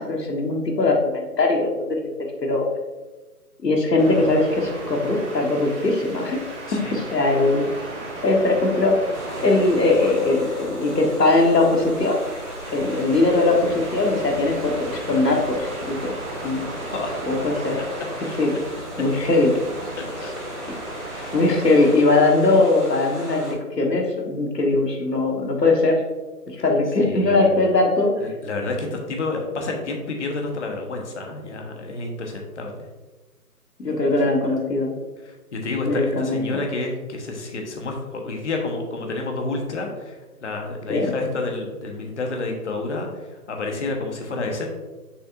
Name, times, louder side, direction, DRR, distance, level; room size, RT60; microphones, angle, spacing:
voice 1, 0.0-2.0 2.4-2.7 3.6-6.4 6.7-7.7 8.2-9.0 9.4-12.2 12.7-16.1 16.4-16.6 17.3-17.8 18.4-18.6 19.0-19.6 21.3-26.0 26.5-28.1 33.8-34.9 35.8-36.4 40.9-41.1, left 2 dB, 85° left, 2 dB, 1.5 m, -20 dB
sound 1, 4.0-22.0, right 2 dB, 50° right, 1.9 m, -36 dB
sound 2, 9.1-23.5, right 1 dB, ahead, 0.7 m, -37 dB
voice 2, 20.0-20.3 21.1-21.3 27.0-27.5 28.2-32.9 33.8-34.0 35.3-44.7, left 3 dB, 45° left, 2 dB, 1.2 m, -29 dB
6.7 x 5.6 x 2.6 m, 1.2 s
figure-of-eight pair, 155°, 47 cm